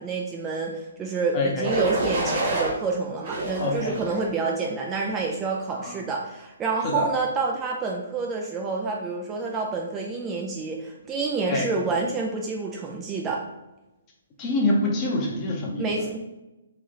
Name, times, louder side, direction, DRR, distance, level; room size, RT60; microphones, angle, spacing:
voice 1, 0.0-13.4 15.8-16.2, right 4 dB, 20° right, 0 dB, 0.4 m, -28 dB
voice 2, 1.3-1.7 3.6-3.9 5.7-5.9 6.8-7.1 11.5-11.8 14.4-15.9, left 2 dB, 30° left, -2 dB, 0.9 m, -25 dB
sound 1, 1.6-2.7 3.2-4.3 4.9-5.2, right 1 dB, 40° right, 1.3 m, -28 dB
3.3 x 2.7 x 3.7 m, 1.0 s
figure-of-eight pair, 135°, 0 cm